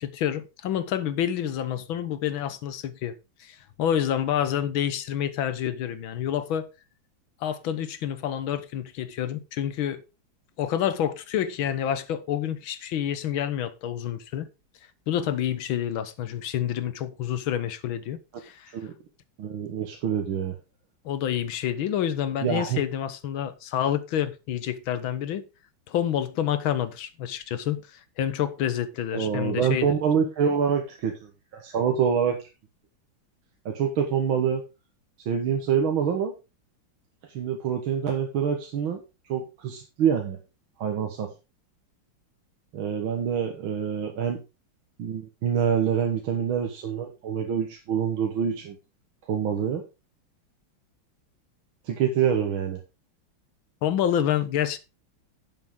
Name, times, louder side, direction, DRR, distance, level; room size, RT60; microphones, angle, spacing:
voice 1, 0.0-3.1 3.4-6.7 7.4-10.0 10.6-14.5 15.1-18.7 21.0-25.4 25.9-30.0 53.8-54.8, left 10 dB, 80° left, 1.7 m, -28 dB
voice 2, 19.4-20.6 22.4-22.8 29.1-32.4 33.7-34.6 35.3-36.3 37.3-39.0 39.3-40.4 40.8-41.3 42.7-44.4 45.0-48.8 49.3-49.8 51.9-52.8, right 7 dB, 75° right, 2.1 m, -26 dB
11.0 x 7.5 x 3.7 m
omnidirectional pair, 2.2 m